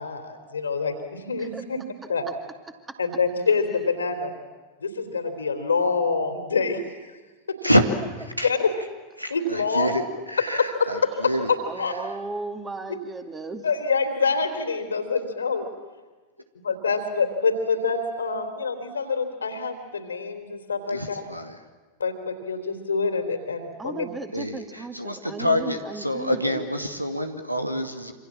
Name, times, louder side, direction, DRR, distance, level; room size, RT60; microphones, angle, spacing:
voice 1, 0.0-1.8 2.1-2.3 3.0-4.4 4.8-6.8 8.4-8.7 9.3-10.0 10.6-11.1 11.5-11.9 12.9-13.0 13.6-15.7 16.6-21.2 22.0-24.1, left 4 dB, 75° left, 7 dB, 3.5 m, -26 dB
voice 2, 3.4-3.8 7.7-8.1 11.1-13.7 23.8-26.7, right 3 dB, 15° right, 6 dB, 2.5 m, -37 dB
voice 3, 8.2-8.5 9.2-10.0 10.3-11.5 20.9-21.5 24.3-28.1, equal, 90° right, 7 dB, 2.2 m, -26 dB
27.0 x 26.0 x 7.5 m, 1.3 s
figure-of-eight pair, 90°, 0 cm